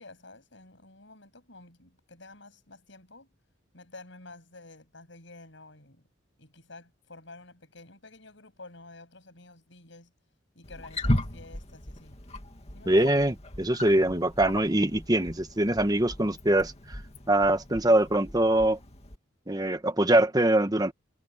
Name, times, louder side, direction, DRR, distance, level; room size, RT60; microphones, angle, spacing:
voice 1, 0.0-3.3 3.7-6.0 6.4-10.1 10.6-12.2 12.7-13.3 17.8-18.0 20.1-20.3, left 2 dB, 65° left, 7.2 m, -50 dB
Wild animals, 10.6-19.2, left 1 dB, 30° left, 2.5 m, -36 dB
voice 2, 12.9-17.0 17.3-18.8 19.5-20.9, right 1 dB, 20° right, 1.3 m, -23 dB
head